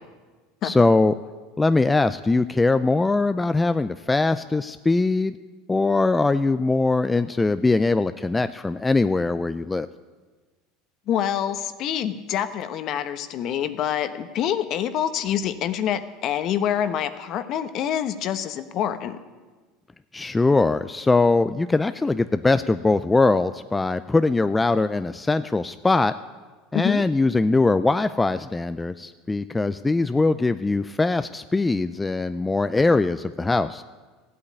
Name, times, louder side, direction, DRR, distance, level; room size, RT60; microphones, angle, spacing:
voice 1, 0.6-1.1 1.6-5.4 5.7-9.9 20.1-26.1 26.7-33.8, left 3 dB, 15° left, 11 dB, 0.4 m, -21 dB
voice 2, 11.1-19.2 26.7-27.0, left 10 dB, 50° left, 11 dB, 1.1 m, -26 dB
14.5 x 8.6 x 9.5 m, 1.3 s
supercardioid pair, 105°, 0 cm